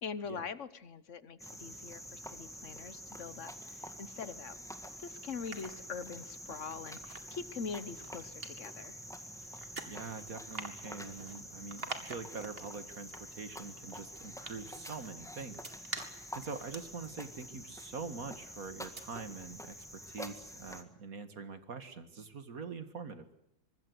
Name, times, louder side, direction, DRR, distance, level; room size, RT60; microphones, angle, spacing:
voice 1, 0.0-4.6 5.0-9.0, left 5 dB, 45° left, 14 dB, 1.3 m, -43 dB
Cricket, 1.4-20.8, equal, ahead, 1.7 m, -47 dB
sound 1, 3.9-4.8 5.2-18.4 18.8-19.0, right 3 dB, 30° right, 2.4 m, -48 dB
voice 2, 9.5-23.3, right 4 dB, 50° right, 10 dB, 2.2 m, -44 dB
25.0 x 21.0 x 8.0 m, 0.77 s
omnidirectional pair, 2.0 m